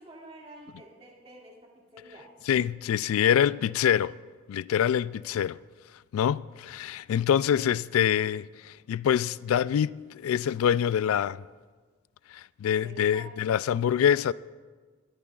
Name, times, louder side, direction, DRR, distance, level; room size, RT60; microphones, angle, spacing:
voice 1, 0.0-2.3 3.4-3.5 5.3-5.4 12.8-13.4, right 2 dB, 30° right, 2.3 m, -49 dB
voice 2, 2.5-4.1 4.5-5.6 6.1-11.4 12.3-14.3, left 9 dB, 85° left, 0.3 m, -25 dB
21.0 x 14.0 x 2.4 m
head